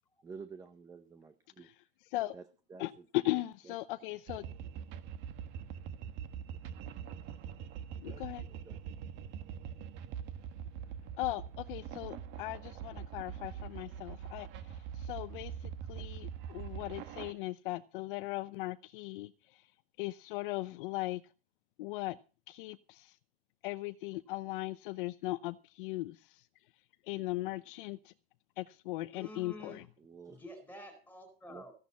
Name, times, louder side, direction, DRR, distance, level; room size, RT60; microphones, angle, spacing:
voice 1, 0.2-1.7 2.3-2.4 2.7-3.7 8.0-8.8 16.0-16.1 16.6-16.7 29.5-29.7 30.0-30.4 31.5-31.6, right 5 dB, 10° right, 0.7 m, -51 dB
voice 2, 2.8-4.5 8.0-8.4 11.2-19.7 20.0-21.2 21.8-22.2 22.5-23.2 23.6-26.1 27.1-28.1 28.6-29.8, left 18 dB, 55° left, 0.8 m, -38 dB
sound 1, 4.3-17.3, right 8 dB, 35° right, 1.2 m, -43 dB
voice 3, 29.1-29.8 30.3-31.7, left 1 dB, 5° left, 4.4 m, -49 dB
15.5 x 10.5 x 5.6 m
supercardioid pair, 170°, 32 cm